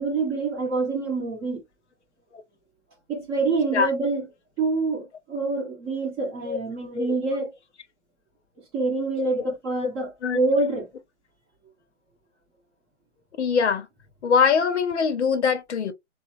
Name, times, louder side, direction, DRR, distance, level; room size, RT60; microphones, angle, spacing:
voice 1, 0.0-1.6 3.1-4.2 4.6-7.5 8.7-10.9, right 3 dB, 20° right, 0.9 m, -26 dB
voice 2, 13.4-13.9 14.2-15.9, left 6 dB, 65° left, 0.6 m, -22 dB
2.7 x 2.0 x 2.4 m
hypercardioid pair, 145°, 37 cm